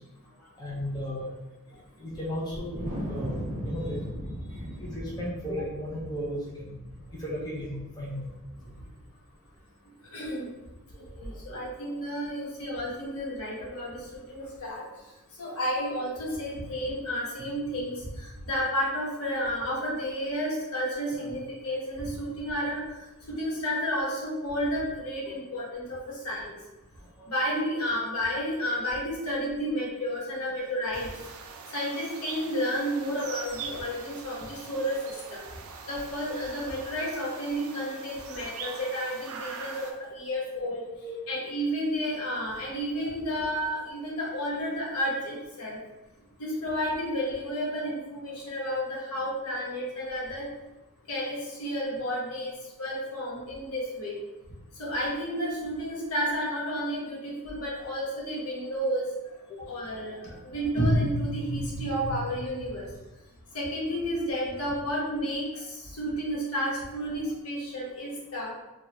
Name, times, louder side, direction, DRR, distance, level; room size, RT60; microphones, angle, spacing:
voice 1, 0.6-1.3 1.7-2.8 3.1-4.0 4.5-6.8 7.1-8.1 8.6-8.7 11.5-11.6 25.3-25.4 27.0-27.1 38.3-38.4 41.0-41.1 59.5-59.7, equal, 20° left, -6 dB, 0.5 m, -35 dB
Wind, 2.5-9.0, equal, 35° right, 0.8 m, -38 dB
voice 2, 10.1-10.5 11.0-14.8 15.4-23.0 23.3-26.6 27.3-31.3 31.7-35.4 35.9-40.8 41.3-45.8 46.4-50.5 51.1-54.2 54.8-59.1 59.7-62.9 63.5-68.5, equal, 70° left, -5 dB, 1.0 m, -31 dB
sound 1, 30.9-39.9, right 5 dB, 65° right, 0.4 m, -42 dB
3.1 x 2.3 x 2.9 m, 1.0 s
head